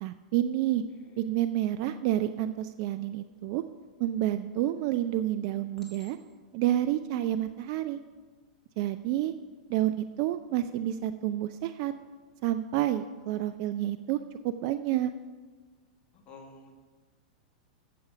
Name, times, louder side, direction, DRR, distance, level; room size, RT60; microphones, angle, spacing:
voice 1, 0.0-0.8 1.2-3.6 4.0-6.2 6.5-8.0 8.8-9.3 9.7-11.9 12.4-15.1, right 13 dB, 50° right, 12 dB, 0.4 m, -29 dB
Chink clink, 4.7-4.8 5.8-6.6 7.3-7.6, left 2 dB, 15° left, 2.5 m, -57 dB
voice 2, 16.1-16.8, left 3 dB, 30° left, 1 dB, 1.6 m, -51 dB
7.7 x 6.8 x 6.0 m, 1.4 s
hypercardioid pair, 105°, 4 cm